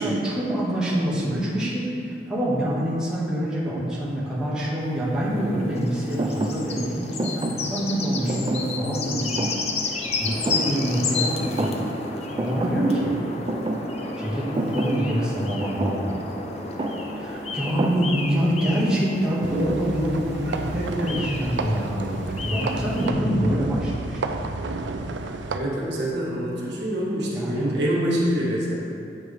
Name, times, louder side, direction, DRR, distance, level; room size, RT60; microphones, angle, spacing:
voice 1, 0.0-9.6 9.8-11.8 12.4-13.1 14.2-16.3 17.2-24.2 27.3-27.7, equal, 5° right, -9 dB, 1.6 m, -26 dB
sound 1, 4.9-23.1, left 3 dB, 35° left, 0.6 m, -32 dB
Thump thud, 6.2-11.2 11.5-12.1 12.4-18.5, right 2 dB, 25° right, 0.4 m, -31 dB
sound 2, 19.4-25.6, right 3 dB, 85° right, 0.5 m, -31 dB
voice 2, 25.5-28.8, equal, 65° right, -5 dB, 1.5 m, -26 dB
8.5 x 6.0 x 3.4 m, 2.5 s
head